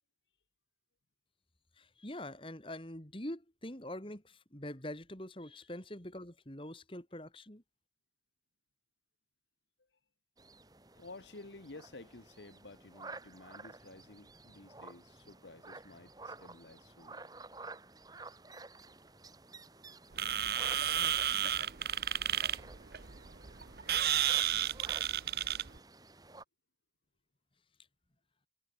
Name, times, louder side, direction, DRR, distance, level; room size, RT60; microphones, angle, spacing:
voice 1, 1.8-7.6, left 1 dB, 30° left, 3.3 m, -44 dB
sound 1, 10.4-26.4, right 3 dB, 20° right, 2.6 m, -52 dB
voice 2, 11.0-17.3, left 2 dB, 85° left, 1.4 m, -53 dB
sound 2, 20.1-25.8, right 10 dB, 60° right, 0.9 m, -32 dB
head